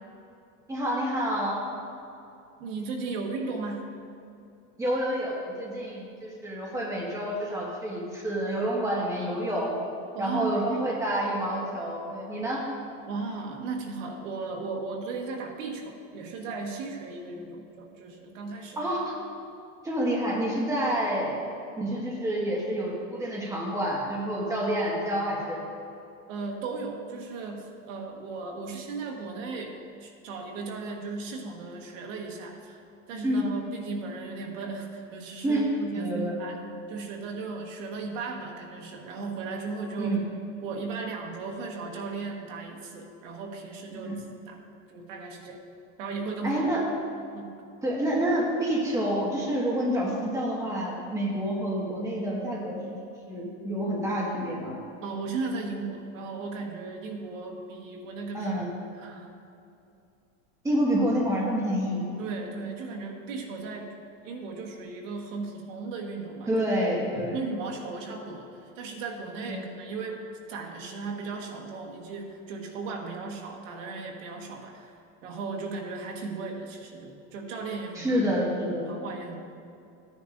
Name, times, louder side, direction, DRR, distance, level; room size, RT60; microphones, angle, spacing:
voice 1, 0.7-1.6 4.8-9.7 10.2-12.6 18.8-19.1 19.8-21.3 21.8-25.6 33.2-33.4 35.4-35.6 35.9-36.3 40.0-40.2 43.9-44.1 46.4-46.8 47.8-52.8 53.3-54.8 58.3-58.7 60.6-62.0 66.5-67.4 69.5-69.6 77.9-78.9, equal, 10° right, -4 dB, 1.6 m, -28 dB
voice 2, 2.6-3.8 10.1-10.9 13.1-18.8 26.3-32.8 33.1-36.6 36.9-40.1 40.6-44.6 44.9-45.6 46.0-46.6 47.3-47.5 55.0-59.3 62.2-63.9 64.2-66.6 67.3-70.2 70.5-74.9 75.2-78.2 78.9-79.3, right 4 dB, 85° right, 1 dB, 1.6 m, -36 dB
14.5 x 10.0 x 2.6 m, 2.6 s
supercardioid pair, 160°, 38 cm